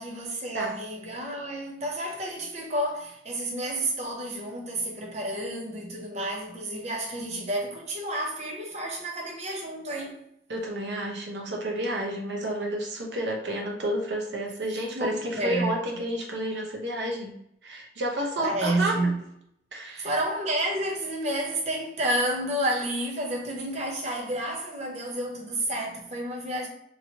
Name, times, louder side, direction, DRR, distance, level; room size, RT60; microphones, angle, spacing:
voice 1, 0.0-10.1 14.9-15.7 18.4-19.2 20.0-26.7, right 1 dB, 40° right, 0.7 m, -30 dB
voice 2, 10.5-17.3 17.6-19.0 19.7-20.1, right 1 dB, 75° right, 0.8 m, -30 dB
3.0 x 2.7 x 2.8 m
head